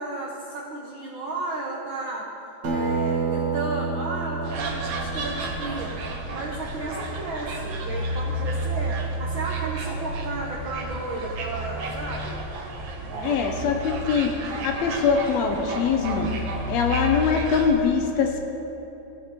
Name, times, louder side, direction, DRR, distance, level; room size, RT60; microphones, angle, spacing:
voice 1, 0.0-2.3 2.7-5.9 6.3-12.4 13.1-13.5, right 2 dB, 85° right, -2 dB, 1.1 m, -33 dB
Acoustic guitar, 2.6-7.5, right 4 dB, 50° right, 1.4 m, -30 dB
sound 1, 4.4-17.7, right 1 dB, 70° right, 2.0 m, -31 dB
voice 2, 13.2-14.3 14.6-16.3 16.7-18.4, left 6 dB, 75° left, 3 dB, 1.7 m, -23 dB
16.5 x 6.5 x 3.0 m, 3.0 s
omnidirectional pair, 3.4 m